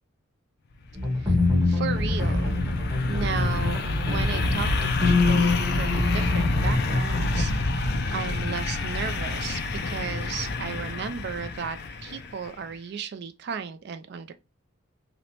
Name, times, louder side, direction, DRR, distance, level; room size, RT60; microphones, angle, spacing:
sound 1, 0.9-12.5, left 2 dB, 50° left, 0.3 m, -28 dB
sound 2, 0.9-7.4, left 3 dB, 15° right, 0.9 m, -25 dB
voice 1, 1.7-2.5 3.1-7.9 8.1-9.6 9.9-14.3, right 6 dB, 50° right, 0.3 m, -35 dB
2.9 x 2.1 x 2.8 m
head